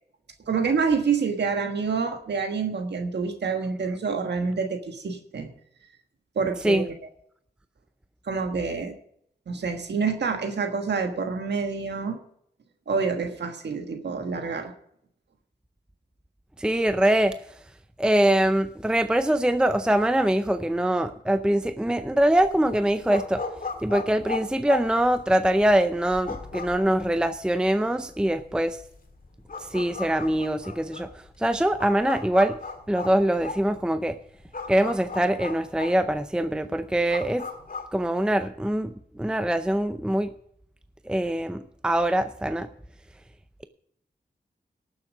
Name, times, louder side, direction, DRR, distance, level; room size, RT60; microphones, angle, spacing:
voice 1, 0.5-5.5 6.3-6.8 8.2-8.9 9.5-12.2 12.9-14.7, right 5 dB, 85° right, 4 dB, 1.5 m, -27 dB
voice 2, 16.6-17.4 18.0-23.4 23.8-28.8 29.7-31.1 31.4-32.6 32.9-34.2 34.7-37.4 37.9-38.9 39.2-40.3 41.1-42.7, right 1 dB, 5° right, 10 dB, 0.6 m, -23 dB
sound 1, 22.0-37.9, left 4 dB, 55° left, 2.0 m, -38 dB
18.5 x 7.2 x 5.0 m, 0.68 s
wide cardioid pair, 95°, 17 cm